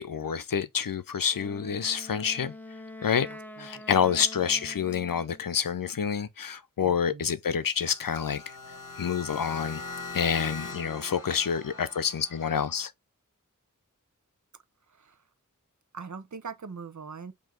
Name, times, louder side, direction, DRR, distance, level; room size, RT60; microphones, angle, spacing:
voice 1, 0.0-2.5 3.0-3.3 3.6-8.4 9.0-9.8 10.1-12.9, left 7 dB, 85° left, 0.6 m, -28 dB
Wind instrument woodwind instrument, 1.3-5.5, left 1 dB, 5° left, 0.7 m, -45 dB
voice 2, 3.3-3.8 6.8-7.4 15.0-15.1 15.9-17.3, right 5 dB, 60° right, 0.7 m, -42 dB
sound 1, 7.8-12.8, left 3 dB, 70° left, 1.0 m, -41 dB
4.7 x 2.8 x 3.7 m
wide cardioid pair, 50°, 33 cm